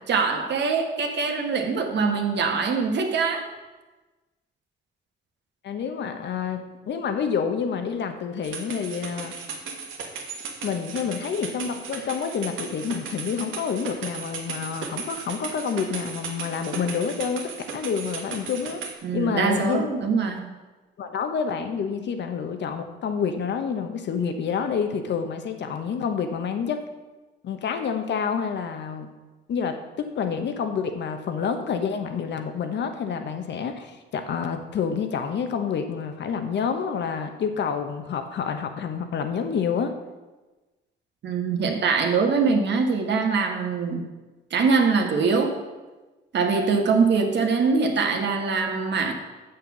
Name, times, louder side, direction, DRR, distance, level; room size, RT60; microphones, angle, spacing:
voice 1, 0.1-3.4 19.0-20.5 41.2-44.1 44.5-45.5 46.3-49.1, right 4 dB, 60° right, 4 dB, 1.4 m, -23 dB
voice 2, 5.6-9.3 10.6-18.8 19.1-19.8 21.0-26.8 27.4-29.1 29.5-39.9, left 6 dB, 60° left, 7 dB, 1.1 m, -28 dB
sound 1, 8.4-18.9, right 5 dB, 80° right, 1.5 m, -36 dB
7.3 x 6.7 x 6.0 m, 1.2 s
cardioid pair, 90°, 20 cm